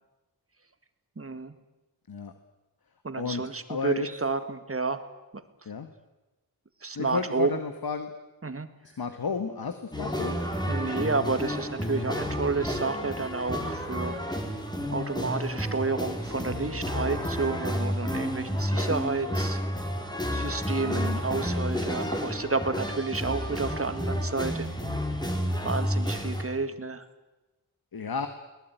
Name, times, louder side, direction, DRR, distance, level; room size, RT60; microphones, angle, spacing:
voice 1, 1.2-1.5 3.0-5.0 6.8-7.6 8.4-8.7 10.7-14.2 14.9-19.6 20.3-24.7 25.6-27.1, right 3 dB, 35° right, 10 dB, 2.0 m, -30 dB
voice 2, 3.7-4.1 5.6-5.9 6.9-8.1 9.0-10.4 20.9-21.2 27.9-28.3, left 5 dB, 70° left, 9 dB, 1.6 m, -32 dB
sound 1, 9.9-26.4, equal, 10° left, 4.3 m, -31 dB
22.5 x 19.5 x 9.2 m, 1.1 s
wide cardioid pair, 70°, 38 cm